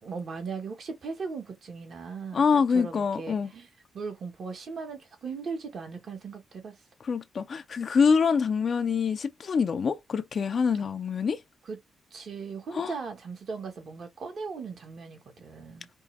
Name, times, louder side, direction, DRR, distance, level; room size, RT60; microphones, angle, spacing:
voice 1, 0.0-3.7 3.9-6.7 11.7-11.8 12.1-15.9, right 5 dB, 65° right, 1.5 m, -38 dB
voice 2, 2.3-3.5 7.0-11.4 12.7-12.9, left 5 dB, 55° left, 0.5 m, -25 dB
5.3 x 2.1 x 3.4 m
supercardioid pair, 50°, 0 cm